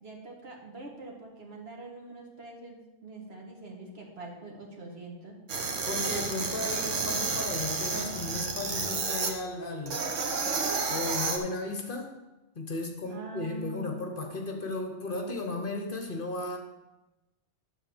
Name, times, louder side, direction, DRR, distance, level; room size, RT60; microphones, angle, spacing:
voice 1, 0.0-5.4 13.1-14.0, right 1 dB, 55° right, 0 dB, 1.8 m, -44 dB
sound 1, 5.5-9.3 9.9-11.4, right 4 dB, 80° right, 1.4 m, -31 dB
voice 2, 5.9-10.0 10.9-12.2 12.5-16.6, left 2 dB, 50° left, 4 dB, 1.1 m, -35 dB
11.0 x 4.1 x 7.0 m, 1.0 s
omnidirectional pair, 1.2 m